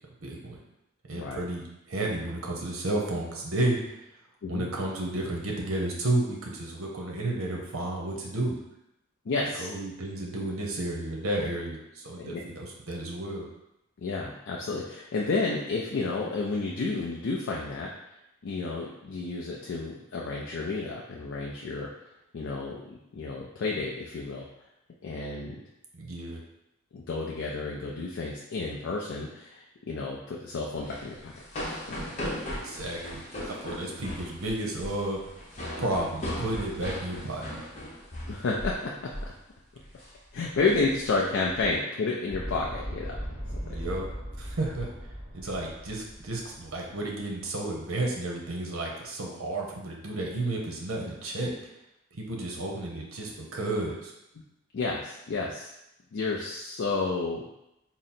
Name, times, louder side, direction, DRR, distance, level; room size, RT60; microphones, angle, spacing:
voice 1, 0.2-0.6 1.1-4.0 4.5-8.6 9.6-13.5 25.9-26.4 32.6-35.2 35.8-37.4 43.5-44.0 44.4-44.9 45.3-51.5 52.1-54.1, right 2 dB, 70° right, -1 dB, 0.8 m, -32 dB
voice 2, 9.3-9.7 12.2-12.4 14.0-17.9 18.4-21.9 22.3-24.4 25.0-25.6 26.9-31.3 31.6-32.0 38.3-38.9 40.3-43.2 54.7-55.7 56.1-57.5, left 3 dB, 60° left, -2 dB, 0.4 m, -31 dB
sound 1, 30.8-38.8 39.1-39.4 39.8-40.1 40.5-41.7, equal, 35° left, 0.8 m, -37 dB
sound 2, 42.3-47.5, equal, 25° right, 0.9 m, -39 dB
3.7 x 2.0 x 4.2 m, 0.88 s
head